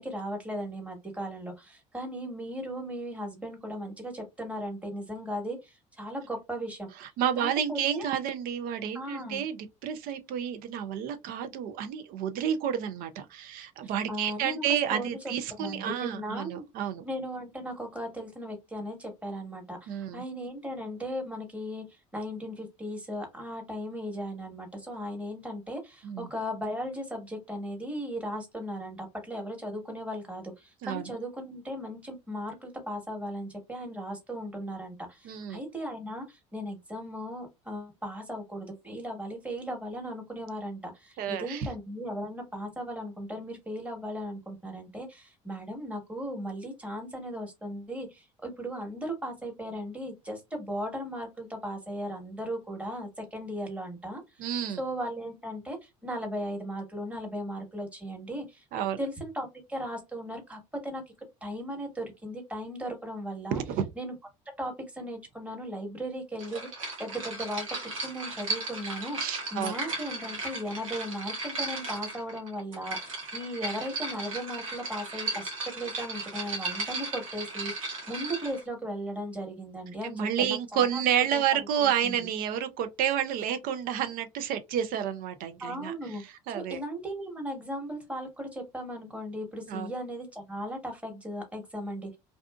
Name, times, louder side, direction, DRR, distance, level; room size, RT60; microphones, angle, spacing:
voice 1, 0.0-6.9 7.4-8.1 8.9-9.4 13.8-15.3 15.6-16.7 17.0-54.5 54.8-58.6 59.0-61.0 61.4-63.6 64.0-64.1 64.6-67.7 68.0-69.2 69.5-81.0 81.3-81.4 81.8-82.2 85.6-92.2, equal, 10° right, 1.2 m, -37 dB
voice 2, 7.0-17.1 19.9-20.2 26.0-26.3 30.8-31.1 35.2-35.6 41.2-41.7 54.4-54.8 58.7-59.0 63.5-63.8 69.2-69.7 80.0-85.9 86.5-86.8 89.7-89.9, right 9 dB, 60° right, 0.6 m, -30 dB
sound 1, 66.4-78.6, right 3 dB, 90° right, 1.0 m, -36 dB
2.7 x 2.3 x 2.3 m
hypercardioid pair, 65°, 17 cm